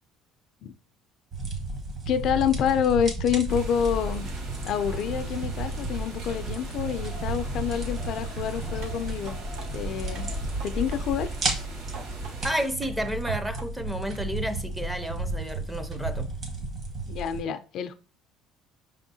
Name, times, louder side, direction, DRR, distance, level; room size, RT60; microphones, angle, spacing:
sound 1, 1.3-17.4, right 2 dB, 40° right, 1.1 m, -34 dB
voice 1, 2.1-4.3 4.6-9.4 9.7-10.3 10.6-11.4 17.1-17.9, left 8 dB, 55° left, 0.3 m, -27 dB
sound 2, 3.5-12.7, right 2 dB, 55° right, 1.9 m, -37 dB
sound 3, 8.8-9.7 10.1-11.0 11.5-12.3 12.8-13.7 14.1-14.2, right 4 dB, 80° right, 0.8 m, -46 dB
voice 2, 12.4-16.3, equal, 5° right, 0.5 m, -31 dB
5.3 x 3.5 x 2.7 m
cardioid pair, 120°, 0 cm